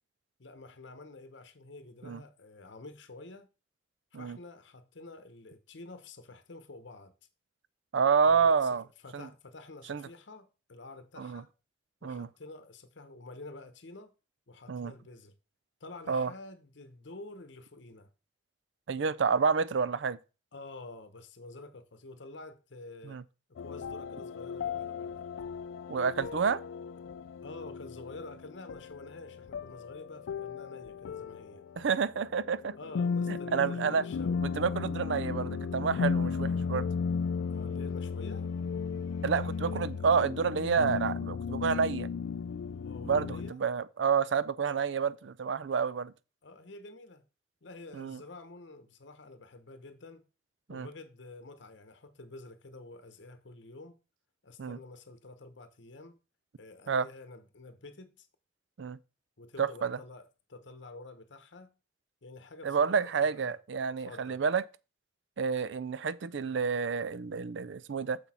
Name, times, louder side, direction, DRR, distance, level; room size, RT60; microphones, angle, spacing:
voice 1, 0.4-3.5 4.1-7.1 8.2-11.5 12.0-14.1 14.5-15.3 15.8-18.1 20.5-23.2 23.6-25.3 27.4-31.6 32.8-34.4 37.5-38.5 42.8-43.6 46.4-47.2 47.6-50.3 50.7-53.9 54.4-56.2 56.6-58.3 59.4-61.7 62.2-63.6 64.0-64.4, left 2 dB, 70° left, 0.9 m, -49 dB
voice 2, 7.9-8.8 9.1-9.3 9.9-10.1 11.2-11.4 12.0-12.3 14.7-14.9 16.1-16.3 18.9-20.2 23.0-23.2 25.9-26.6 31.8-32.7 33.3-34.0 34.4-36.9 39.2-42.1 43.0-46.1 47.9-48.2 50.7-50.9 54.6-54.8 56.9-57.1 58.8-59.0 59.6-60.0 62.6-64.6 65.4-68.2, right 6 dB, 70° right, 0.4 m, -29 dB
sound 1, 23.6-43.5, left 5 dB, 90° left, 0.3 m, -35 dB
6.9 x 6.1 x 4.2 m
head